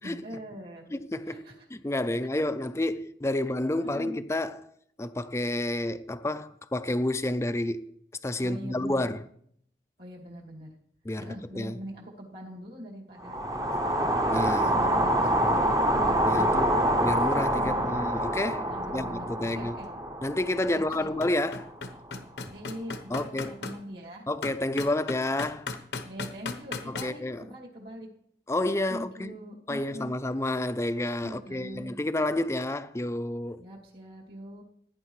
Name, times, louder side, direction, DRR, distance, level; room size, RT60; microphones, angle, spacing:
voice 1, 0.0-1.0 1.3-1.7 3.8-4.2 8.4-9.1 10.0-10.7 11.2-13.4 13.6-13.8 14.6-16.7 17.6-17.9 18.7-19.9 20.7-21.1 22.4-24.3 26.0-28.1 28.9-30.1 31.2-31.9 33.6-34.6, equal, 60° right, 2.4 m, -42 dB
voice 2, 0.9-1.4 1.7-4.7 5.0-7.9 8.2-9.2 11.1-11.8 14.3-15.1 16.2-16.7 17.0-19.8 20.2-21.7 23.1-23.5 24.3-25.7 26.9-27.4 28.5-29.4 29.7-33.6, left 1 dB, 15° left, 0.4 m, -30 dB
sound 1, 13.2-21.4, right 1 dB, 20° right, 0.8 m, -26 dB
sound 2, 19.8-19.9 20.4-23.8 24.4-27.1, left 3 dB, 75° left, 1.0 m, -36 dB
17.0 x 9.8 x 3.2 m
head